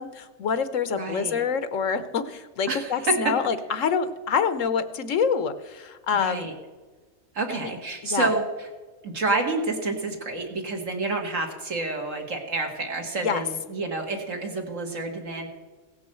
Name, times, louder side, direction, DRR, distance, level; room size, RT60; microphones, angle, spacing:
voice 1, 0.0-6.5 7.5-7.7 8.0-8.3 13.2-13.4, left 6 dB, 70° left, 11 dB, 1.1 m, -26 dB
voice 2, 1.0-1.4 2.7-3.3 6.2-6.5 7.3-8.7 9.0-15.5, right 3 dB, 65° right, 2 dB, 2.2 m, -29 dB
17.0 x 6.2 x 7.6 m, 1.4 s
omnidirectional pair, 1.5 m